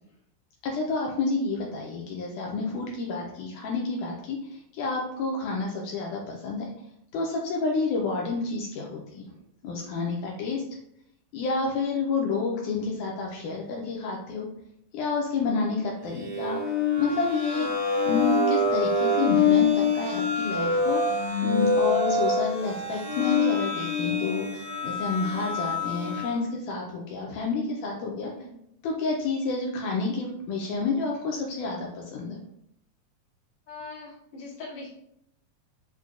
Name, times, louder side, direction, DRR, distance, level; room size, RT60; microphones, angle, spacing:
voice 1, 0.6-6.7 7.1-9.2 9.6-10.6 11.3-14.5 14.9-16.6 17.0-17.7 18.1-28.3 28.8-32.4, left 4 dB, 80° left, -1 dB, 2.0 m, -29 dB
sound 1, 16.2-26.4, left 4 dB, 75° right, 1.5 m, -25 dB
voice 2, 33.7-34.9, left 3 dB, 55° left, -6 dB, 1.8 m, -41 dB
5.9 x 2.1 x 2.4 m, 0.75 s
omnidirectional pair, 3.7 m